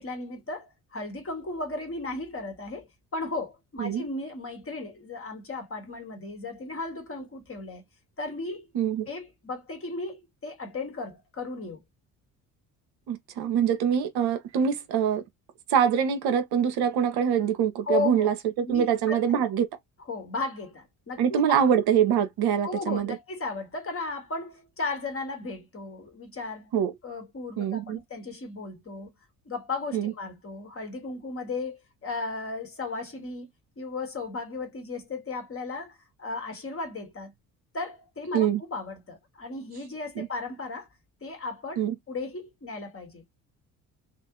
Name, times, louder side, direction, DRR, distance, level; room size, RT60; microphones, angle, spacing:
voice 1, 0.0-7.8 8.2-8.7 9.1-11.8 17.9-18.3 18.7-19.4 20.1-21.6 22.6-26.7 27.0-29.1 29.4-33.5 33.8-37.3 37.7-40.9 41.2-43.2, left 3 dB, 30° left, 1.5 m, -35 dB
voice 2, 8.7-9.1 13.1-15.2 15.7-19.7 21.2-23.2 26.7-26.9 27.6-28.0 29.9-30.1 38.3-38.6 40.2-40.3 41.8-42.0, right 8 dB, 50° right, 0.8 m, -24 dB
2.7 x 2.5 x 3.7 m
figure-of-eight pair, 50°, 48 cm